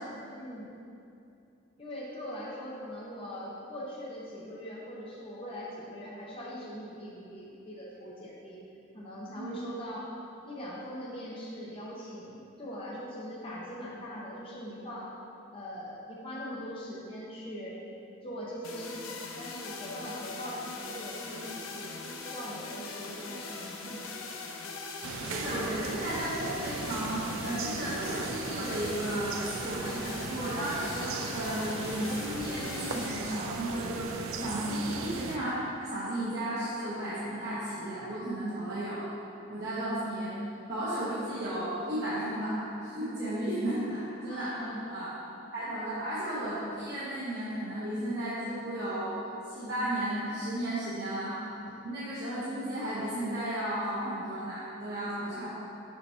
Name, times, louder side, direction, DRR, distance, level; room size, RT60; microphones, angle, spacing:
voice 1, 0.3-0.7 1.8-8.6 8.9-10.1 10.5-15.1 15.5-17.8 18.2-24.2 44.2-44.8, equal, 25° left, -6 dB, 0.8 m, -41 dB
sound 1, 18.6-34.7, left 4 dB, 90° left, 0.6 m, -41 dB
sound 2, 25.0-35.4, right 4 dB, 85° right, 0.4 m, -38 dB
voice 2, 25.2-35.5 35.8-39.0 39.5-40.3 40.7-44.5 44.9-45.1 45.5-49.2 49.5-51.4 51.8-55.5, right 1 dB, 55° right, -11 dB, 1.1 m, -34 dB
6.7 x 2.9 x 5.5 m, 2.7 s
head